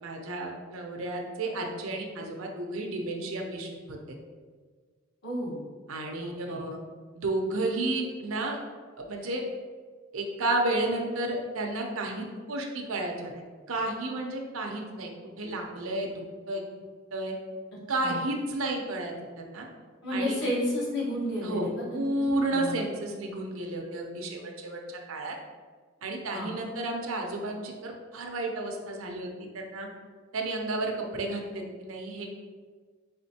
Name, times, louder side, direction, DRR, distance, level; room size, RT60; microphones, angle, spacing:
voice 1, 0.0-4.0 5.9-6.8 7.1-8.6 9.0-9.4 10.1-13.3 13.7-15.1 15.4-16.1 16.5-16.6 17.1-17.3 17.9-19.7 20.1-20.4 21.4-24.8 25.1-25.4 26.0-29.3 29.5-29.9 30.3-32.3, right 2 dB, 85° right, 2 dB, 0.7 m, -32 dB
voice 2, 5.2-5.6 6.2-6.6 18.0-18.2 20.0-22.8 26.3-26.5, left 1 dB, 55° left, -6 dB, 1.3 m, -32 dB
4.2 x 3.6 x 2.8 m, 1.6 s
head